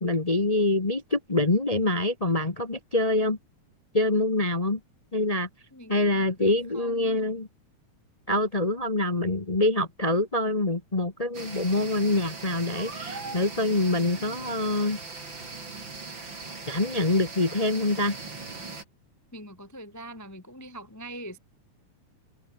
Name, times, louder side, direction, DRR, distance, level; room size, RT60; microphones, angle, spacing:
voice 1, 0.0-3.4 3.9-4.8 5.1-5.5 5.9-7.5 8.3-15.0 16.7-18.1, left 2 dB, 60° left, 0.4 m, -25 dB
voice 2, 5.7-7.3 19.3-21.4, right 1 dB, 5° left, 1.9 m, -43 dB
sound 1, 11.3-18.8, right 3 dB, 35° right, 5.2 m, -39 dB
omnidirectional pair, 3.4 m